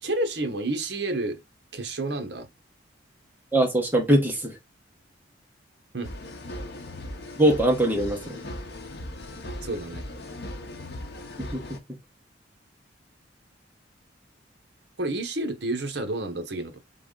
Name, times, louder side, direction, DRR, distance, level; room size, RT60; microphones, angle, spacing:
voice 1, 0.0-1.4 1.7-2.5 5.9-6.1 9.6-10.0 15.0-16.8, right 2 dB, 60° right, 0.9 m, -30 dB
voice 2, 3.5-4.6 7.4-8.4 11.5-11.6, right 1 dB, 10° right, 1.0 m, -22 dB
sound 1, 6.0-11.8, left 1 dB, 55° left, 0.8 m, -38 dB
3.8 x 3.7 x 3.7 m
head